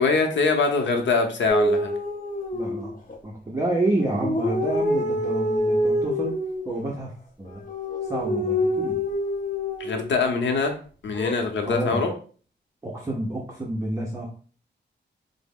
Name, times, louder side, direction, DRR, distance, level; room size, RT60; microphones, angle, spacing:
voice 1, 0.0-1.9 9.8-10.7 11.0-12.1, left 4 dB, 90° left, 4 dB, 0.7 m, -23 dB
sound 1, 1.5-3.2 4.0-6.6 7.5-10.1 11.2-11.7, left 1 dB, 45° left, 0.7 m, -26 dB
voice 2, 2.5-2.9 3.2-6.3 6.6-7.6 8.0-9.0 11.6-12.1 12.8-14.2, right 1 dB, 15° right, -3 dB, 0.6 m, -29 dB
4.7 x 2.0 x 3.5 m, 0.41 s
wide cardioid pair, 155°, 19 cm